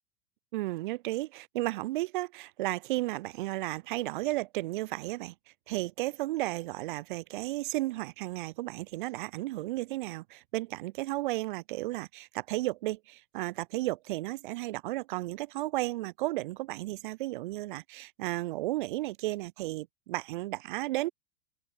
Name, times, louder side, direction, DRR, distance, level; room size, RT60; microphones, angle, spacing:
voice 1, 0.5-5.3 5.7-21.1, right 18 dB, 35° right, 0.4 m, -33 dB
open air
figure-of-eight pair, 95°, 47 cm